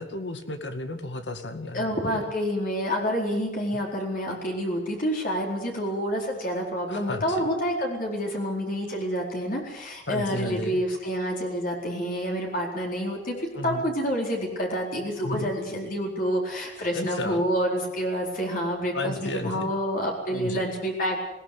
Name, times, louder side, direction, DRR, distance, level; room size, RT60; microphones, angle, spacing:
voice 1, 0.0-2.3 6.9-7.5 10.1-10.8 13.5-13.9 15.2-15.5 16.9-17.4 18.9-19.7 20.3-20.7, left 2 dB, 80° left, 8 dB, 2.2 m, -33 dB
voice 2, 1.7-13.3 13.6-21.2, equal, 50° left, 0 dB, 4.4 m, -28 dB
21.0 x 18.5 x 8.0 m, 0.95 s
head